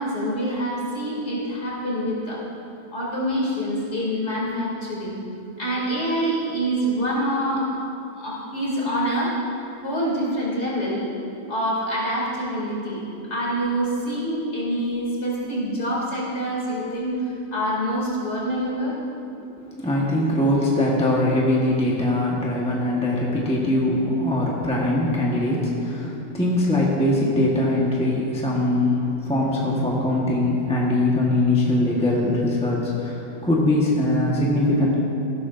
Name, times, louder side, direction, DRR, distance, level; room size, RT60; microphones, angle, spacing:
voice 1, 0.0-2.4 2.9-5.2 5.6-7.6 8.1-9.3 9.8-11.1 11.5-13.0 13.3-17.1 17.5-18.9, equal, 40° left, -6 dB, 3.0 m, -26 dB
voice 2, 19.6-34.9, left 1 dB, 5° left, -5 dB, 1.0 m, -22 dB
15.0 x 12.5 x 2.6 m, 2.8 s
omnidirectional pair, 1.9 m